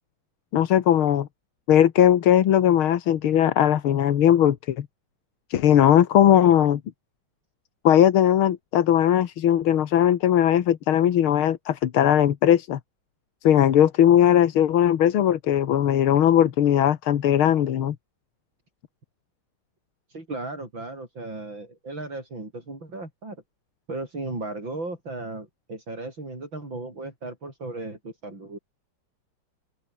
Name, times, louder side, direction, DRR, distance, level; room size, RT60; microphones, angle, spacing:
voice 1, 0.5-1.3 1.7-4.9 5.5-6.8 7.8-12.8 13.4-18.0, left 10 dB, 85° left, 2.1 m, -19 dB
voice 2, 20.1-23.4 23.9-28.6, right 2 dB, 65° right, 8.0 m, -36 dB
open air
omnidirectional pair, 2.2 m